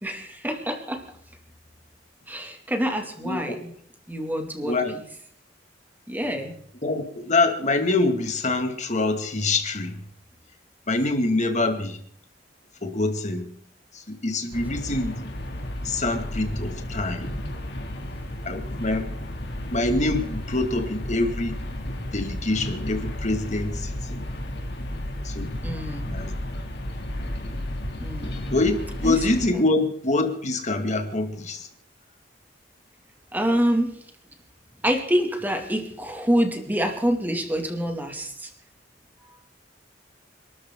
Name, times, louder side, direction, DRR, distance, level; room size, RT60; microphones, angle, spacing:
voice 1, 0.0-1.0 2.3-3.7 4.1-5.0 6.1-6.6 25.6-26.2 28.0-28.4 29.0-29.2 29.5-29.7 33.3-33.9 34.8-38.5, equal, 10° right, 2.6 m, -26 dB
voice 2, 4.6-4.9 6.8-10.0 10.9-12.0 12.8-13.5 14.1-15.3 15.8-17.3 18.4-19.1 19.7-21.6 22.1-24.2 25.2-25.6 26.1-26.3 28.5-31.7, left 2 dB, 40° left, 2.4 m, -25 dB
sound 1, 14.5-29.5, left 1 dB, 65° left, 2.8 m, -33 dB
27.5 x 13.5 x 3.9 m
head